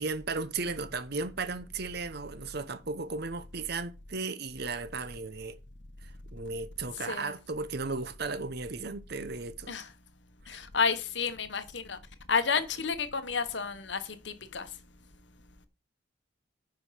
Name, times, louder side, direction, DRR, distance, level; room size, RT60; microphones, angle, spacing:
voice 1, 0.0-5.6 6.3-9.8 10.5-10.6, right 3 dB, 55° right, 0.8 m, -35 dB
voice 2, 7.0-7.3 9.7-9.9 10.5-12.0 12.3-14.7, left 5 dB, 60° left, 1.2 m, -31 dB
9.7 x 5.4 x 5.8 m
head